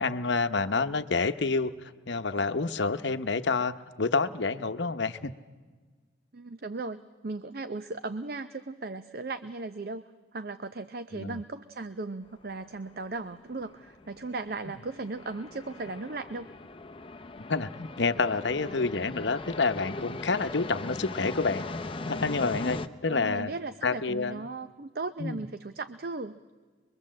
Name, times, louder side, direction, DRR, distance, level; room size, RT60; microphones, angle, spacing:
voice 1, 0.0-1.7 2.1-5.3 11.1-11.4 17.4-21.7 22.0-23.5 23.8-24.5 25.2-25.4, left 4 dB, 65° left, 10 dB, 0.9 m, -28 dB
voice 2, 6.3-10.0 10.3-16.5 23.1-26.4, right 3 dB, 50° right, 11 dB, 0.6 m, -37 dB
sound 1, 12.3-22.9, left 2 dB, 25° left, 0.7 m, -40 dB
24.5 x 22.5 x 7.6 m, 1.4 s
head